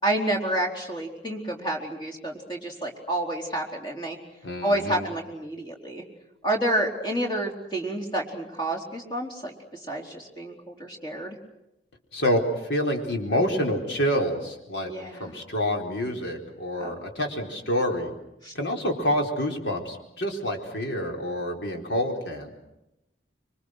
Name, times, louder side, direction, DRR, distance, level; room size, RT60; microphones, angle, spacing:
voice 1, 0.0-4.2 4.6-6.0 6.4-9.5 9.9-11.4 14.9-15.3 16.8-17.1 18.4-18.5, right 1 dB, 25° left, 1 dB, 4.2 m, -29 dB
voice 2, 4.4-5.1 12.1-14.9 15.2-18.1 18.5-22.5, equal, 80° left, 1 dB, 4.2 m, -27 dB
26.5 x 24.0 x 6.4 m, 0.89 s
head